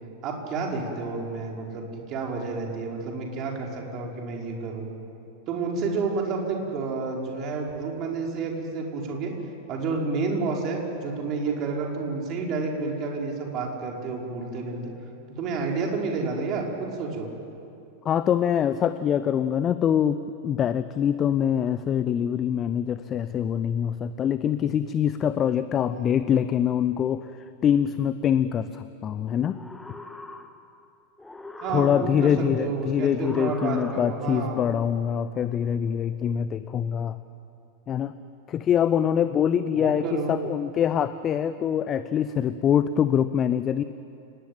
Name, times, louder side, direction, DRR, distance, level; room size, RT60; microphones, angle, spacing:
voice 1, 0.2-4.9 5.5-9.3 9.7-14.8 15.3-17.3 25.9-26.2 31.6-34.6 39.7-40.3, right 4 dB, 35° right, 0 dB, 5.4 m, -30 dB
voice 2, 18.0-27.3 27.6-29.6 31.7-37.2 37.9-38.1 38.5-43.8, left 9 dB, 30° left, 13 dB, 0.8 m, -24 dB
sound 1, 29.4-30.8 31.2-32.4 33.2-34.5, left 2 dB, 5° left, 1.7 m, -40 dB
29.5 x 19.5 x 9.2 m, 2.7 s
figure-of-eight pair, 90°, 0 cm